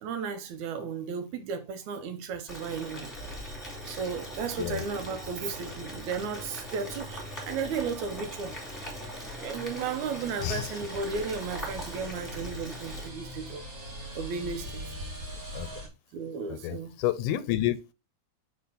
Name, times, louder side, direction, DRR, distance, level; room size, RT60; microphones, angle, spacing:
voice 1, 0.0-3.1 3.8-8.6 9.4-13.6 14.2-14.8 16.1-17.0, right 5 dB, 75° right, 2.1 m, -34 dB
Boiling, 2.5-13.1, equal, 5° left, 1.7 m, -41 dB
sound 1, 3.3-15.9, equal, 35° right, 1.5 m, -44 dB
voice 2, 16.6-17.9, left 13 dB, 90° left, 2.2 m, -29 dB
5.5 x 4.3 x 4.0 m
omnidirectional pair, 3.6 m